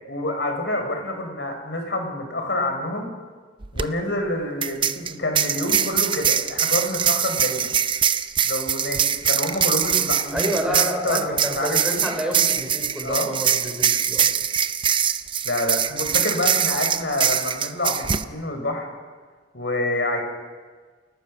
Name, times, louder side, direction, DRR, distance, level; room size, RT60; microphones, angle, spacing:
voice 1, 0.1-3.1 3.7-7.7 8.4-12.1 13.0-13.3 15.4-18.9 19.5-20.2, left 1 dB, 60° left, 4 dB, 4.6 m, -27 dB
sound 1, 3.6-3.8 4.6-18.2, right 8 dB, 25° right, 0.6 m, -23 dB
voice 2, 10.3-14.3, equal, 5° right, 0 dB, 4.9 m, -29 dB
29.0 x 18.0 x 6.3 m, 1.5 s
head